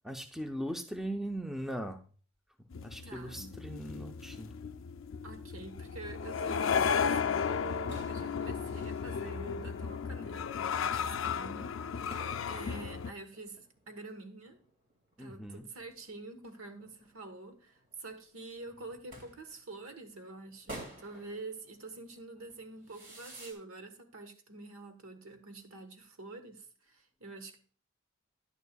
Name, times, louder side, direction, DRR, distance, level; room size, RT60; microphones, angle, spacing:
voice 1, 0.0-2.0 2.8-4.5 15.2-15.6, equal, ahead, 5 dB, 0.5 m, -39 dB
sound 1, 2.7-13.1, left 6 dB, 70° left, 0.4 m, -34 dB
voice 2, 3.0-3.6 5.2-14.6 15.2-27.6, right 3 dB, 85° right, 7 dB, 1.2 m, -47 dB
sound 2, 6.7-23.5, right 1 dB, 40° right, 2.1 m, -53 dB
10.5 x 9.6 x 2.3 m, 0.41 s
head